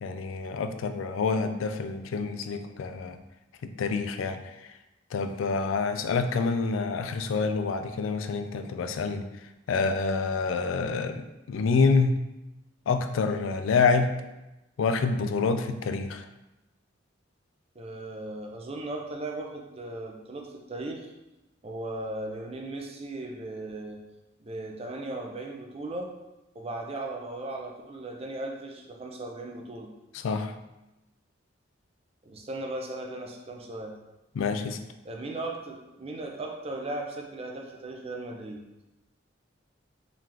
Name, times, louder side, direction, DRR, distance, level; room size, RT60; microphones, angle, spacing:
voice 1, 0.0-3.2 3.6-4.4 5.1-9.3 9.7-12.1 12.9-14.1 14.8-16.3 30.2-30.5 34.4-34.8, left 4 dB, 75° left, 8 dB, 0.4 m, -27 dB
voice 2, 17.8-21.1 21.6-24.0 24.4-26.1 26.5-29.9 32.2-33.9 35.0-38.6, right 2 dB, 30° right, 1 dB, 0.5 m, -37 dB
3.9 x 3.2 x 2.9 m, 0.97 s
head